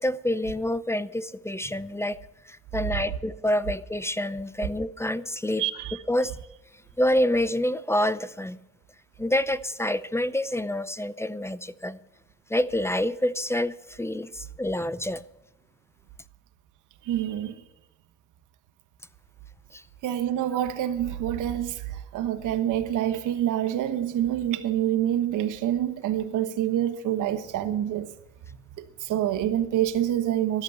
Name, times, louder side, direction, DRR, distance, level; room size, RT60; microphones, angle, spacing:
voice 1, 0.0-2.2 2.5-5.6 6.1-6.4 7.0-8.6 9.2-12.0 12.5-15.2 19.7-19.8, left 1 dB, 10° left, 0.6 m, -27 dB
voice 2, 5.6-6.0 17.0-17.6 20.0-28.1 28.8-30.6, right 11 dB, 85° right, 1.2 m, -27 dB
13.5 x 11.5 x 6.9 m
cardioid pair, 90°, 30 cm